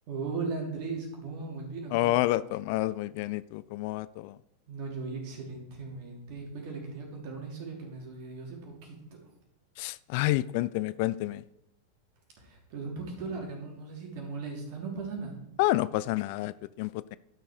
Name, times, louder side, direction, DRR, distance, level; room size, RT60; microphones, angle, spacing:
voice 1, 0.1-2.2 4.7-9.0 12.4-15.4, right 4 dB, 45° right, 3.2 m, -38 dB
voice 2, 1.9-4.4 9.8-11.4 15.6-17.2, left 17 dB, 45° left, 0.3 m, -29 dB
12.0 x 6.4 x 4.7 m
figure-of-eight pair, 90°, 0 cm